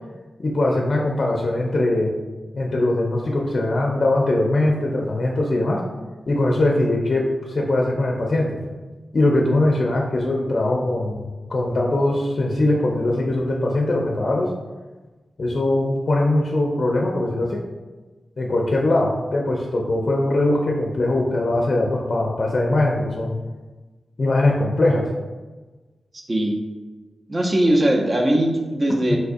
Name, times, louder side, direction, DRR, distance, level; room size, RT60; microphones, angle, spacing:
voice 1, 0.4-2.1 2.5-5.8 6.3-8.6 9.1-14.5 15.4-17.6 18.4-23.4 24.2-25.1 29.1-29.2, left 2 dB, 55° left, -1 dB, 0.4 m, -21 dB
voice 2, 26.1-26.6 27.3-29.2, right 1 dB, 35° right, 1 dB, 0.6 m, -20 dB
4.3 x 2.3 x 2.6 m, 1.3 s
cardioid pair, 60°, 0 cm